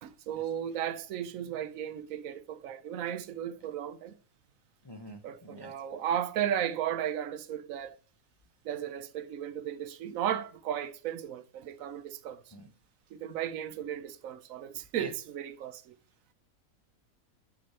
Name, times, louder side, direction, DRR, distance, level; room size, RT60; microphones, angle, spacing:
voice 1, 0.0-4.1 5.2-8.0 8.6-12.4 13.1-16.0, right 10 dB, 75° right, 1.0 m, -35 dB
voice 2, 4.8-5.7 12.5-12.7 15.0-15.1, equal, 30° left, 0.5 m, -45 dB
6.4 x 6.0 x 4.2 m
omnidirectional pair, 1.5 m